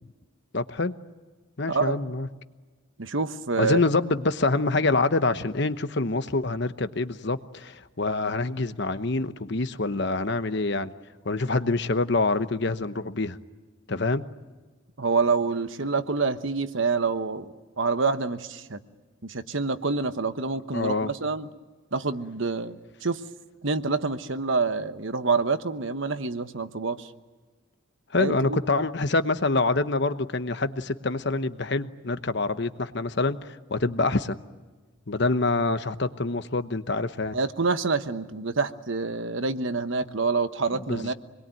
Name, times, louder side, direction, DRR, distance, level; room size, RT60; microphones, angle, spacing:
voice 1, 0.5-1.0 1.6-2.3 3.6-10.9 11.2-13.4 13.9-14.2 20.7-21.1 28.1-34.4 35.1-37.4 40.9-41.1, left 3 dB, 55° left, 11 dB, 1.0 m, -26 dB
voice 2, 1.7-2.1 3.0-3.8 15.0-18.8 19.2-21.5 21.9-23.2 23.6-27.1 28.2-28.8 37.3-41.1, right 4 dB, 65° right, 10 dB, 1.2 m, -27 dB
27.0 x 21.5 x 9.1 m, 1.3 s
head